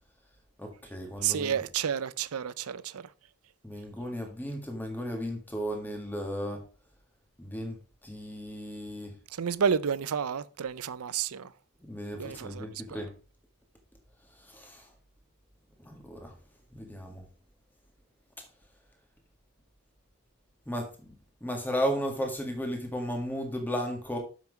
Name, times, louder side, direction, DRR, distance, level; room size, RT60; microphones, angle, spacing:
voice 1, 0.6-1.6 3.6-6.6 7.4-9.1 11.8-13.1 14.4-14.9 15.8-16.3 16.7-17.2 20.7-21.1 21.4-24.2, equal, 10° left, 1.7 m, -35 dB
voice 2, 1.2-3.0 9.4-11.5 12.1-13.1, right 7 dB, 85° right, 0.5 m, -30 dB
7.4 x 5.9 x 4.6 m
head